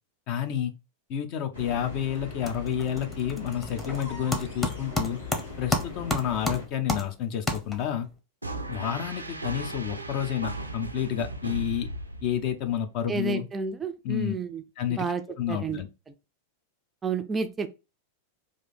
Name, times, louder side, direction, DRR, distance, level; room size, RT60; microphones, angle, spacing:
voice 1, 0.3-0.7 1.1-5.2 5.6-8.1 8.7-11.9 12.2-13.5 14.0-14.3 14.8-15.1 15.4-15.9, left 9 dB, 45° left, 0.6 m, -30 dB
sound 1, 1.5-6.7, left 4 dB, 75° left, 1.5 m, -40 dB
sound 2, 1.6-2.0 2.2-8.1, left 2 dB, 15° left, 0.9 m, -32 dB
sound 3, 8.4-12.7, right 2 dB, 85° right, 0.5 m, -36 dB
voice 2, 13.1-14.6 14.9-15.2 15.5-15.8 17.0-17.7, right 5 dB, 15° right, 0.4 m, -30 dB
3.1 x 2.6 x 3.9 m
figure-of-eight pair, 90°, 0 cm